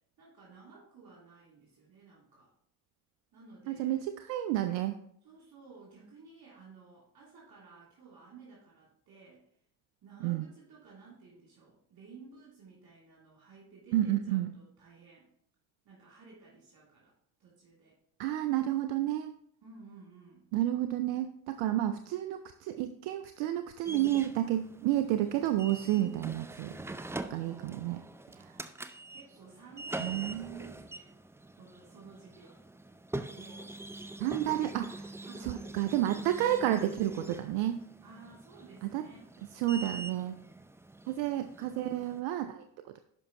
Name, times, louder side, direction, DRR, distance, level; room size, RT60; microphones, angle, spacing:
voice 1, 0.2-2.5 3.3-4.1 5.2-9.4 10.0-15.3 15.8-17.1 17.4-18.0 19.6-20.5 25.9-26.2 27.0-28.0 28.6-31.1 31.5-32.6 33.3-33.8 35.2-35.7 38.0-39.3, right 4 dB, 50° right, -5 dB, 3.0 m, -54 dB
voice 2, 3.7-5.0 10.2-10.5 13.9-14.5 18.2-19.3 20.5-26.8 27.3-28.0 28.3-28.6 30.0-30.6 34.2-35.1 35.4-37.8 38.8-39.0 39.5-40.3 41.1-43.0, right 13 dB, 70° right, 10 dB, 0.6 m, -31 dB
sound 1, 23.8-42.2, right 2 dB, 5° right, 0.4 m, -44 dB
10.5 x 5.3 x 2.9 m, 0.69 s
hypercardioid pair, 45°, 47 cm